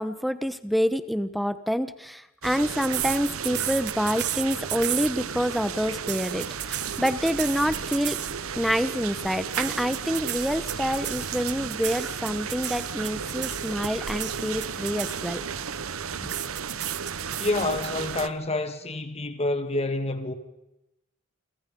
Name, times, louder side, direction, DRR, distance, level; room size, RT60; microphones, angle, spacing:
voice 1, 0.0-6.5 7.0-8.2 8.6-15.4 16.2-16.3, equal, ahead, 1.1 m, -27 dB
sound 1, 2.4-18.3, right 6 dB, 85° right, 1.0 m, -34 dB
sound 2, 2.8-5.5 5.9-8.5 9.5-15.5 16.3-17.9, right 13 dB, 55° right, 1.3 m, -33 dB
voice 2, 17.4-20.3, left 2 dB, 30° left, 2.3 m, -28 dB
29.0 x 24.5 x 5.4 m
head